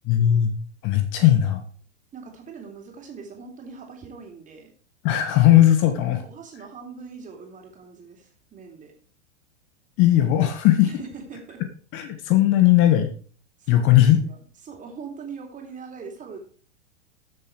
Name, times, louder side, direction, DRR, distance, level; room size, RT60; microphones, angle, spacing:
voice 1, 0.1-0.5 0.8-1.6 5.0-6.2 10.0-10.9 11.9-13.1 13.7-14.2, left 12 dB, 35° left, 7 dB, 1.7 m, -18 dB
voice 2, 2.1-4.7 5.8-8.9 10.8-11.6 13.6-14.4 14.6-16.4, right 5 dB, 20° right, 2 dB, 3.6 m, -41 dB
14.0 x 7.3 x 4.7 m, 0.42 s
figure-of-eight pair, 95°, 36 cm